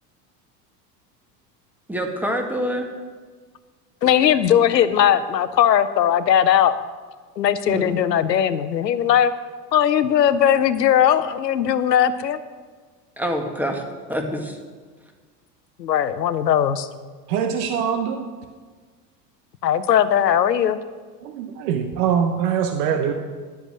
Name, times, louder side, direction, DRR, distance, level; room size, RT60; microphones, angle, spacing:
voice 1, 1.9-2.9 7.7-8.0 13.2-13.8 14.1-14.6, equal, 5° right, 3 dB, 1.8 m, -26 dB
voice 2, 4.0-6.8 7.4-9.3 9.7-12.4 15.8-16.9 19.6-20.8, left 9 dB, 90° left, 14 dB, 0.7 m, -18 dB
voice 3, 17.3-18.3 21.2-23.1, right 7 dB, 65° right, 6 dB, 1.1 m, -23 dB
11.5 x 7.9 x 6.3 m, 1.5 s
hypercardioid pair, 80°, 48 cm